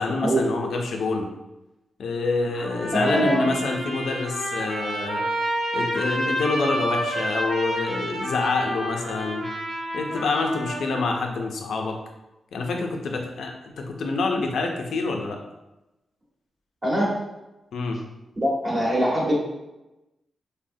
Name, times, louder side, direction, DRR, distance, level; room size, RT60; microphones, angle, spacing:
voice 1, 0.0-1.3 2.0-5.3 5.7-9.5 9.9-12.0 12.5-15.4 17.7-18.0, left 3 dB, 85° left, 2 dB, 0.4 m, -27 dB
Trumpet, 2.5-11.1, equal, 85° right, 1.4 m, -29 dB
voice 2, 2.9-3.5 16.8-17.2 18.4-19.3, equal, 35° right, -5 dB, 1.0 m, -23 dB
3.3 x 2.0 x 2.6 m, 0.98 s
cardioid pair, 100°, 0 cm